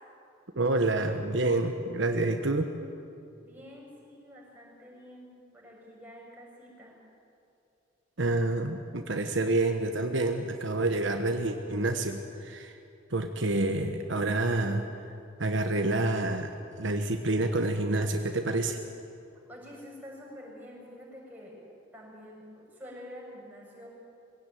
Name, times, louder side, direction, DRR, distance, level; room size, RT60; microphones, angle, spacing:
voice 1, 0.5-2.7 8.2-12.8 13.1-14.9 15.4-16.5 16.8-18.8, right 2 dB, 65° right, 5 dB, 1.3 m, -28 dB
voice 2, 3.4-7.0 19.5-21.5 21.9-22.4 22.7-23.9, equal, 10° right, -4 dB, 6.7 m, -47 dB
22.0 x 16.5 x 9.3 m, 2.7 s
head